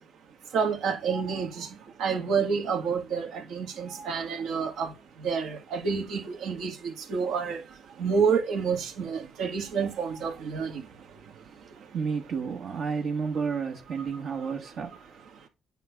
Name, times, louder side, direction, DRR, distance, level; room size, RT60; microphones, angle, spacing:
voice 1, 0.5-1.7 2.0-4.9 5.2-7.6 8.0-10.7, right 6 dB, 80° right, 2.0 m, -28 dB
voice 2, 11.9-15.5, right 5 dB, 65° right, 1.3 m, -32 dB
9.3 x 3.4 x 4.8 m
cardioid pair, 90°, 0 cm